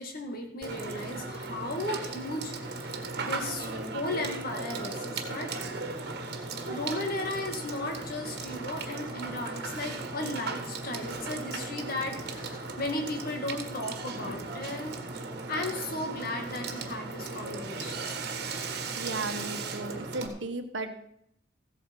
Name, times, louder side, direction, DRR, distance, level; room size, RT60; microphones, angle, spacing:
voice 1, 0.0-5.6 6.7-15.0 15.5-18.2, left 2 dB, 55° left, 3 dB, 2.2 m, -35 dB
Water / Water tap faucet / Sink (filling or washing), 0.6-20.3, right 3 dB, 60° right, 1.6 m, -37 dB
Slow and atmospheric electric guitar solo, 4.6-18.3, equal, 15° right, 0.8 m, -51 dB
voice 2, 18.9-20.9, right 2 dB, 80° right, 8 dB, 1.3 m, -35 dB
15.0 x 8.2 x 5.5 m, 0.71 s
head